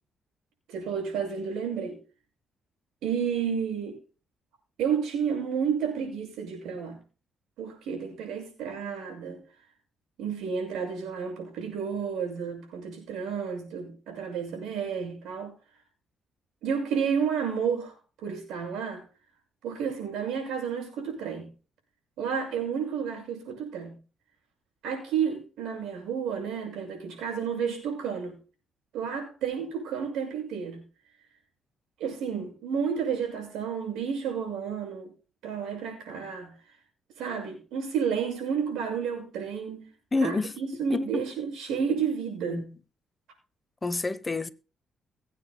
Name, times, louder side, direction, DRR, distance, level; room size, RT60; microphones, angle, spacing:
voice 1, 0.7-2.0 3.0-4.0 4.8-7.0 7.6-9.4 10.2-15.5 16.6-19.0 19.6-21.5 22.2-24.0 24.8-28.4 28.9-30.8 32.0-35.1 35.4-36.5 37.2-39.9 40.2-42.7, right 7 dB, 85° right, 6.8 m, -31 dB
voice 2, 40.1-40.5 40.9-41.2 42.5-42.6 43.8-44.5, left 3 dB, 20° left, 0.8 m, -28 dB
22.5 x 9.2 x 2.3 m
cardioid pair, 90°, 0 cm